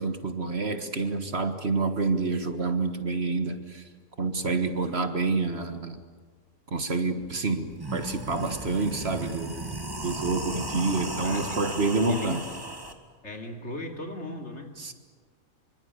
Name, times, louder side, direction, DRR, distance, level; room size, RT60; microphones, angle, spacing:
voice 1, 0.0-3.8 4.2-6.0 6.7-9.7 10.0-12.4 14.8-14.9, right 3 dB, 50° right, 7 dB, 1.8 m, -28 dB
sound 1, 7.2-7.3 7.7-12.9, right 1 dB, 15° right, 1.9 m, -35 dB
voice 2, 11.2-11.6 12.1-12.4 13.2-14.7, left 1 dB, 55° left, 3 dB, 3.3 m, -38 dB
26.0 x 24.5 x 8.2 m, 1.5 s
omnidirectional pair, 1.4 m